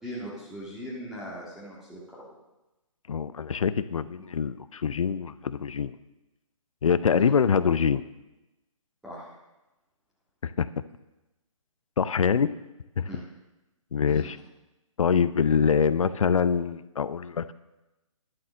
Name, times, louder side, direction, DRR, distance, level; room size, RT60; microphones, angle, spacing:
voice 1, 0.0-2.3 7.1-7.3 9.0-9.3 13.1-13.2 14.1-14.3, equal, 5° right, -8 dB, 1.9 m, -40 dB
voice 2, 3.1-5.9 6.8-8.0 10.4-10.7 12.0-12.5 13.0-13.1 13.9-14.4 15.0-17.5, left 6 dB, 70° left, 15 dB, 0.6 m, -24 dB
11.5 x 7.4 x 6.3 m, 1.0 s
figure-of-eight pair, 140°, 18 cm